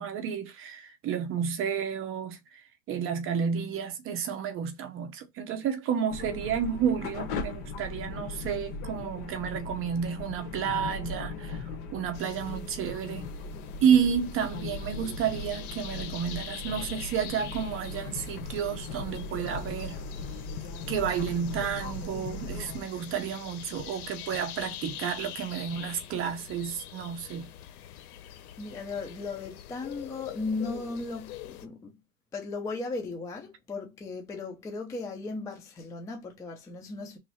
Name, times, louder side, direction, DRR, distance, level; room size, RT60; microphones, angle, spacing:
voice 1, 0.0-13.3 13.8-20.0 20.9-27.5, right 7 dB, 30° right, 0.7 m, -31 dB
sound 1, 6.1-22.8, left 3 dB, 55° left, 1.3 m, -38 dB
sound 2, 12.1-31.7, left 11 dB, 90° left, 0.7 m, -44 dB
voice 2, 27.9-28.3 28.6-32.0 32.3-37.2, left 3 dB, 10° left, 0.4 m, -36 dB
3.2 x 2.6 x 4.2 m
supercardioid pair, 140°, 43 cm